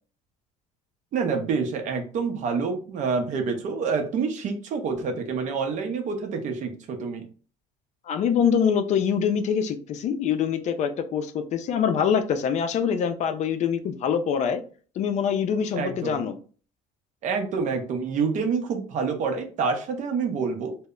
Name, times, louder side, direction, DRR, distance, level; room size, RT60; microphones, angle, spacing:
voice 1, 1.1-7.2 15.7-16.2 17.2-20.8, right 5 dB, 55° right, 6 dB, 0.6 m, -27 dB
voice 2, 8.1-14.6 15.0-16.3, left 7 dB, 50° left, 8 dB, 0.4 m, -24 dB
2.0 x 2.0 x 3.6 m, 0.40 s
supercardioid pair, 90°, 15 cm